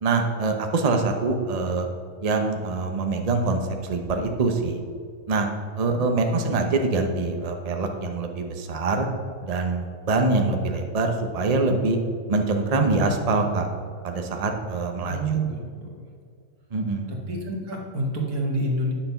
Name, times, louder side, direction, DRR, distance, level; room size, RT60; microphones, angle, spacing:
voice 1, 0.0-1.9 2.2-4.8 5.3-5.5 5.7-9.1 9.4-12.0 12.3-13.7 14.0-15.4 16.7-17.1, right 3 dB, 30° right, 4 dB, 0.8 m, -24 dB
voice 2, 5.9-6.6 15.0-16.0 17.1-18.9, right 1 dB, 90° right, 0 dB, 2.3 m, -28 dB
9.9 x 6.7 x 5.7 m, 2.2 s
omnidirectional pair, 1.5 m